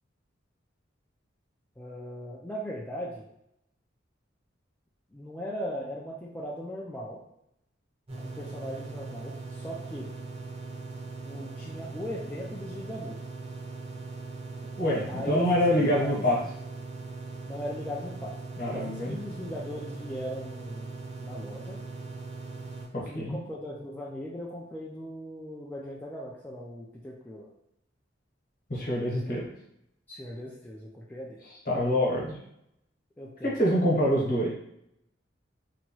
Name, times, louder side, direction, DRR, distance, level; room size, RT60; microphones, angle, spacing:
voice 1, 1.8-3.2 5.1-7.2 8.2-10.1 11.3-13.2 15.1-15.4 15.8-16.3 17.5-18.3 18.7-20.9 21.2-21.8 23.0-27.5 30.1-31.4 33.2-33.5, equal, 10° left, -5 dB, 0.3 m, -38 dB
sound 1, 8.1-22.9, right 3 dB, 30° right, 0.7 m, -40 dB
voice 2, 14.8-16.4 18.6-19.2 22.9-23.4 28.7-29.5 31.7-32.4 33.4-34.5, equal, 50° left, -5 dB, 1.0 m, -25 dB
2.9 x 2.2 x 2.9 m, 0.77 s
head